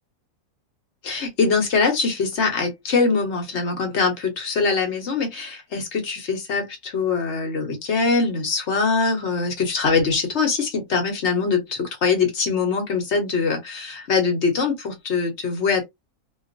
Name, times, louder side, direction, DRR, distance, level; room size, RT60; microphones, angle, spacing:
voice 1, 1.0-15.8, left 4 dB, 55° left, 1.0 m, -23 dB
2.5 x 2.3 x 2.4 m
omnidirectional pair, 1.6 m